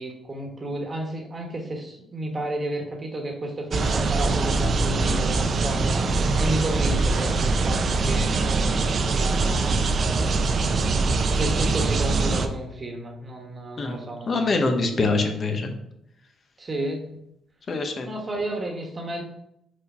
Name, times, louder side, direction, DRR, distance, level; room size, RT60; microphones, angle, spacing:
voice 1, 0.0-6.0 6.4-9.8 11.3-14.7 16.6-17.0 18.0-19.2, right 1 dB, 30° right, 2 dB, 1.4 m, -32 dB
sound 1, 3.7-12.5, right 3 dB, 50° right, 0.6 m, -23 dB
voice 2, 14.3-15.7 17.7-18.1, left 3 dB, 45° left, 5 dB, 1.1 m, -24 dB
4.9 x 4.3 x 5.6 m, 0.78 s
cardioid pair, 90°, 0 cm